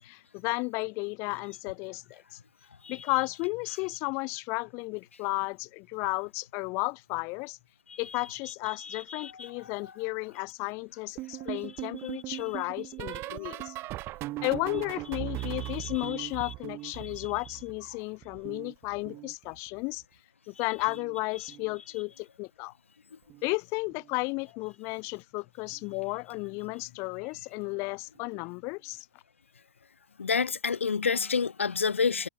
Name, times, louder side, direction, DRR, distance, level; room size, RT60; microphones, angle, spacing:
voice 1, 0.0-2.4 2.9-7.6 8.0-13.7 14.4-20.0 20.5-22.7 23.4-29.1, left 28 dB, 45° left, 3.4 m, -33 dB
voice 2, 8.8-9.5 13.3-13.5 16.0-16.1 30.2-32.3, left 5 dB, 75° left, 1.1 m, -29 dB
sound 1, 11.2-17.9 18.2-19.8 20.8-21.2 21.4-21.8 23.3-23.6 23.9-24.2 25.7-25.8, right 18 dB, 35° right, 1.5 m, -39 dB
figure-of-eight pair, 95°, 7 cm